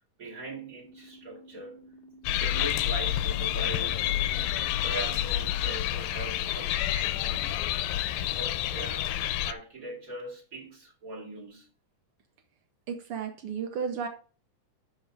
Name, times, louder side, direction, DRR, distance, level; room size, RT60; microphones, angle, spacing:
voice 1, 0.2-1.8 2.3-4.2 4.8-7.7 8.1-11.7, right 2 dB, 25° right, 2.5 m, -41 dB
sound 1, 0.8-5.8, right 1 dB, 55° left, 1.1 m, -52 dB
sound 2, 2.3-9.5, left 13 dB, 85° left, 2.3 m, -29 dB
voice 2, 12.9-14.1, right 6 dB, 75° right, 1.3 m, -33 dB
12.5 x 4.5 x 4.9 m
omnidirectional pair, 3.9 m